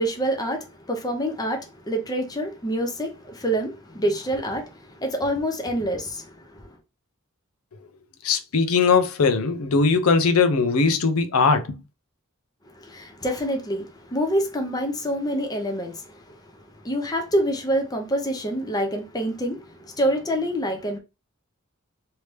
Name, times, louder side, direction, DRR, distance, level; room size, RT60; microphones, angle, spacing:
voice 1, 0.0-6.3 6.6-6.7 12.8-16.1 16.8-21.0, equal, 20° left, 0.7 m, -26 dB
voice 2, 8.2-11.8, left 4 dB, 85° left, 0.6 m, -20 dB
3.2 x 2.8 x 3.2 m
head